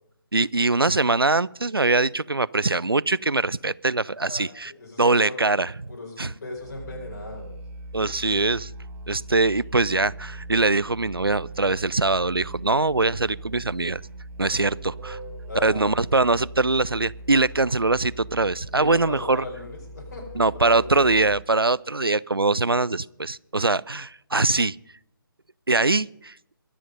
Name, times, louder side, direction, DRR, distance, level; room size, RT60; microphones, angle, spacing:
voice 1, 0.3-4.7 5.0-5.7 6.2-6.3 7.9-8.7 9.1-14.0 14.4-15.2 15.6-19.4 20.4-24.8 25.7-26.3, right 3 dB, 90° right, 22 dB, 0.4 m, -22 dB
voice 2, 4.3-7.6 15.5-16.0 18.7-21.2, left 2 dB, 45° left, 0 dB, 5.0 m, -38 dB
Musical instrument, 6.5-21.6, right 2 dB, 15° right, 1.3 m, -40 dB
22.5 x 7.6 x 5.3 m, 0.76 s
figure-of-eight pair, 145°, 12 cm